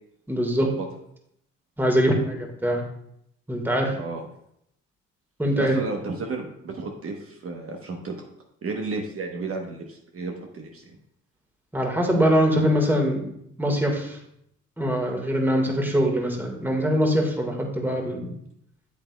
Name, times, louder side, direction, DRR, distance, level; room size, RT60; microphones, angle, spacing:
voice 1, 0.3-0.7 1.8-2.8 3.5-3.9 5.4-5.8 11.7-13.3 13.6-14.2 14.8-18.3, equal, 5° right, 1 dB, 1.7 m, -23 dB
voice 2, 3.9-4.3 5.5-8.1 8.6-10.9, right 3 dB, 50° right, 1 dB, 1.1 m, -33 dB
8.6 x 7.9 x 2.3 m, 0.73 s
cardioid pair, 90°, 30 cm